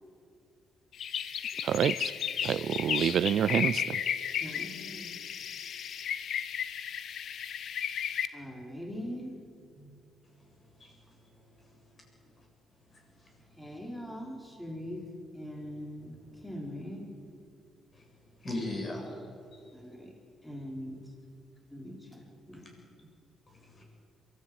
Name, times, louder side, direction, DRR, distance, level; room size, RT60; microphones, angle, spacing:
sound 1, 0.9-8.3, left 8 dB, 65° left, 1.1 m, -34 dB
voice 1, 1.6-2.1 2.4-4.0, right 9 dB, 65° right, 19 dB, 0.4 m, -27 dB
voice 2, 4.4-5.1 8.3-9.3 9.7-10.0 13.6-15.0 15.3-17.0 19.7-20.1 20.4-21.0 21.7-22.2 22.5-22.7, equal, 5° left, 0 dB, 4.8 m, -41 dB
voice 3, 18.4-19.2 19.5-19.6 23.5-23.8, left 1 dB, 35° left, 0 dB, 7.5 m, -37 dB
23.0 x 14.0 x 9.2 m, 2.5 s
cardioid pair, 90°, 0 cm